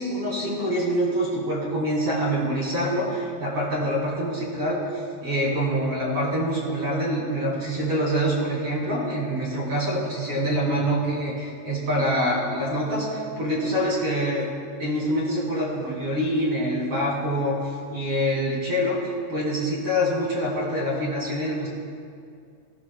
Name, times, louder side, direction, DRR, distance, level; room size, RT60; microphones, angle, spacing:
voice 1, 0.0-14.5 14.8-19.0 19.3-21.7, equal, 40° right, -6 dB, 2.3 m, -25 dB
18.5 x 15.0 x 2.3 m, 2.3 s
omnidirectional pair, 5.9 m